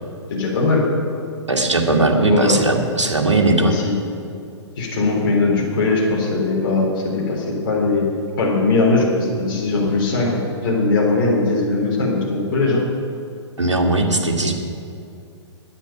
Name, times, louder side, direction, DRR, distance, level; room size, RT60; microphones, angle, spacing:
voice 1, 0.3-0.8 2.2-2.6 3.5-3.9 4.8-8.1 8.4-12.8, left 3 dB, 45° left, -3 dB, 3.9 m, -20 dB
voice 2, 1.5-3.8 13.6-14.5, right 2 dB, 80° right, 1 dB, 1.9 m, -18 dB
10.5 x 8.8 x 9.1 m, 2.5 s
figure-of-eight pair, 115°, 15 cm